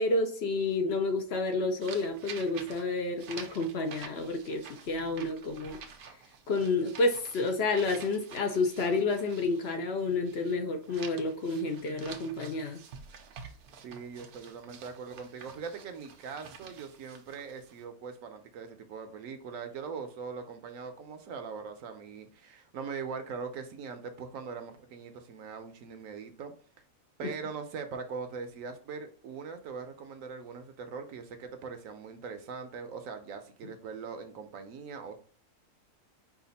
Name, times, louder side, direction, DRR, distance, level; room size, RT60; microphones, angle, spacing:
voice 1, 0.0-5.8 6.5-12.8 27.2-27.3, left 3 dB, 55° left, 0.8 m, -30 dB
sound 1, 1.8-10.6 10.8-17.8, right 6 dB, 90° right, 1.2 m, -49 dB
voice 2, 13.7-26.5 27.2-35.2, right 5 dB, 70° right, 1.1 m, -41 dB
4.9 x 2.5 x 4.0 m
omnidirectional pair, 1.5 m